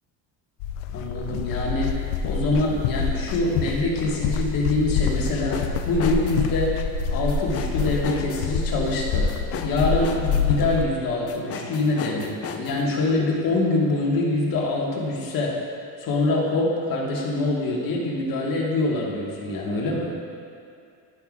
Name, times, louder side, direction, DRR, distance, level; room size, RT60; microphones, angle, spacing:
sound 1, 0.6-10.9, left 5 dB, 90° left, 0.5 m, -26 dB
voice 1, 0.9-6.8 7.1-9.3 9.6-15.6 16.0-20.1, left 2 dB, 55° left, -3 dB, 1.7 m, -25 dB
sound 2, 5.1-6.5 7.3-8.5 9.3-10.5 11.3-13.5 14.6-14.7, left 6 dB, 35° left, 0.5 m, -36 dB
11.5 x 5.7 x 2.5 m, 2.4 s
cardioid pair, 110°, 41 cm